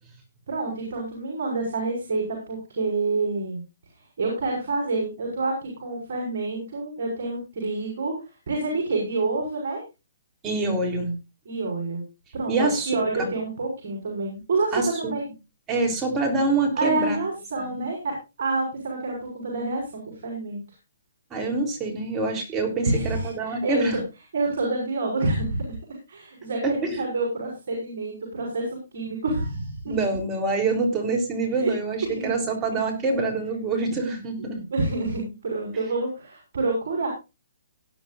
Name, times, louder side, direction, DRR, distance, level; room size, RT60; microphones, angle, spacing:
voice 1, 0.5-3.6 4.2-8.1 8.5-9.8 11.5-12.0 12.3-15.2 16.8-20.6 22.8-24.0 24.3-25.8 26.1-30.1 31.6-31.7 32.2-32.3 32.7-32.8 34.7-37.1, right 3 dB, 60° right, 0 dB, 5.9 m, -28 dB
voice 2, 10.4-11.1 12.5-13.3 14.7-15.1 15.7-17.2 17.6-17.9 21.3-24.0 26.6-27.0 29.9-34.6, right 3 dB, 15° right, 2 dB, 3.6 m, -26 dB
18.0 x 10.5 x 2.6 m, 0.27 s
hypercardioid pair, 155°, 0 cm